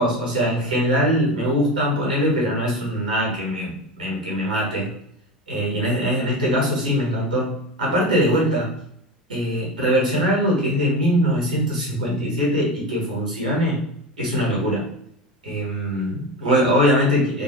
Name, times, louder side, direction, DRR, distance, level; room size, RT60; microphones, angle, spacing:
voice 1, 0.0-4.9 5.5-8.7 9.3-13.8 14.2-14.9 15.4-17.4, equal, 80° right, -4 dB, 1.2 m, -22 dB
2.6 x 2.4 x 3.0 m, 0.69 s
figure-of-eight pair, 75°, 4 cm